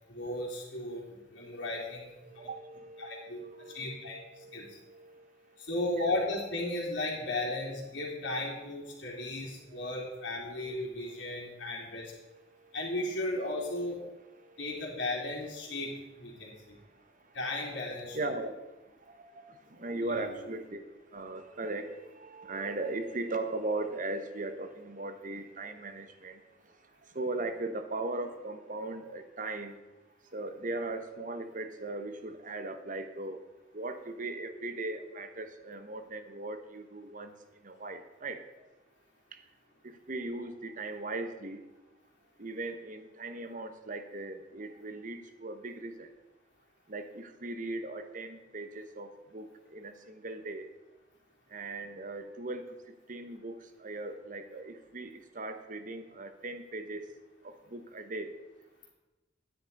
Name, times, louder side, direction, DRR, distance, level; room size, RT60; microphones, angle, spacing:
voice 1, 0.1-2.1 3.0-4.8 5.6-12.1 12.7-14.0 14.6-15.9 16.2-16.8 17.3-18.2 19.9-20.3, left 2 dB, 65° left, -7 dB, 2.9 m, -35 dB
voice 2, 2.2-5.3 9.6-9.9 10.7-10.8 14.4-14.7 18.1-18.5 19.1-20.8 21.1-26.4 27.1-29.8 30.3-33.4 33.7-37.3 37.6-38.4 39.8-41.6 42.4-46.1 46.9-50.7 51.5-52.7 53.1-57.1 57.4-58.3, right 2 dB, 45° right, 9 dB, 1.1 m, -38 dB
11.5 x 9.9 x 5.3 m, 1.1 s
head